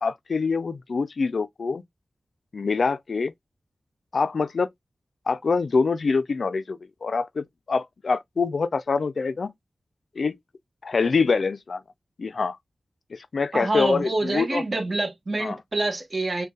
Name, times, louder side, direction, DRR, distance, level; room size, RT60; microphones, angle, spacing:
voice 1, 0.0-1.8 2.5-3.3 4.1-4.7 5.3-9.5 10.2-10.4 10.8-11.8 12.2-12.6 13.1-14.6 15.4-15.6, left 4 dB, 70° left, 0.4 m, -25 dB
voice 2, 13.5-16.5, right 2 dB, 45° right, 1.3 m, -26 dB
6.4 x 2.2 x 2.3 m
wide cardioid pair, 100°, 0 cm